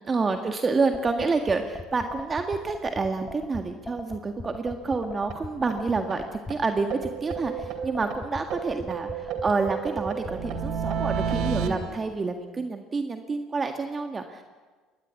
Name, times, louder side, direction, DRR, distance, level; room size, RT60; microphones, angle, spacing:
voice 1, 0.1-14.4, right 4 dB, 30° right, 5 dB, 1.8 m, -28 dB
sound 1, 0.9-11.9, left 3 dB, 20° left, 3.6 m, -39 dB
sound 2, 5.3-5.4 5.7-5.8 6.1-6.2 6.5-6.6 6.9-8.2 8.5-11.7, right 7 dB, 60° right, 3.1 m, -31 dB
23.5 x 19.0 x 8.3 m, 1.4 s
hypercardioid pair, 65°, 0 cm